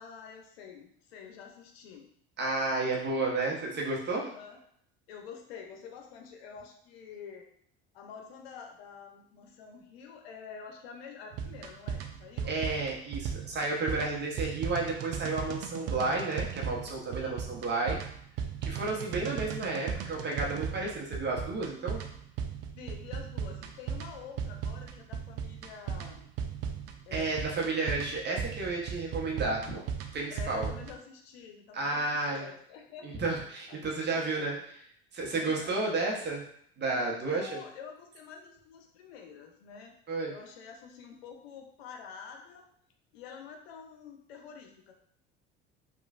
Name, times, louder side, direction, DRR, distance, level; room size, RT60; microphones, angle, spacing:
voice 1, 0.0-2.1 4.1-4.6 5.1-7.5 7.9-12.6 17.2-17.6 22.8-26.3 27.0-27.3 30.3-33.1 33.7-34.6 35.3-35.8 37.0-39.9 40.3-42.7 43.1-44.9, left 6 dB, 85° left, 3 dB, 0.6 m, -48 dB
voice 2, 2.4-4.2 12.4-18.0 18.6-22.0 27.1-29.8 30.1-30.7 31.7-32.5 33.0-34.6 35.1-36.4 36.8-37.6 40.1-40.3, right 3 dB, 35° right, -1 dB, 0.9 m, -32 dB
sound 1, 11.3-31.0, right 7 dB, 55° right, 0.4 m, -37 dB
3.0 x 2.4 x 2.4 m, 0.66 s
hypercardioid pair, 75°, 30 cm